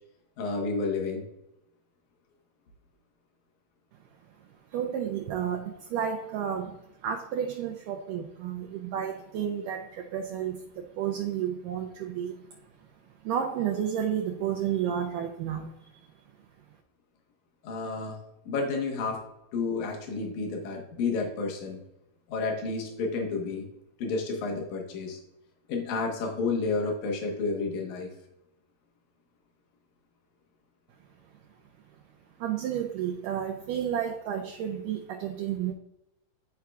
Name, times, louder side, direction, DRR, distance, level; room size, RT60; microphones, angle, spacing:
voice 1, 0.4-1.2 17.6-18.2 18.5-19.2 19.5-21.8 22.3-23.7 24.0-25.2 25.7-28.1, left 4 dB, 65° left, 2.4 m, -30 dB
voice 2, 4.7-12.4 13.2-15.9 32.4-35.7, right 9 dB, 80° right, 2.0 m, -31 dB
11.5 x 4.7 x 2.3 m
omnidirectional pair, 4.2 m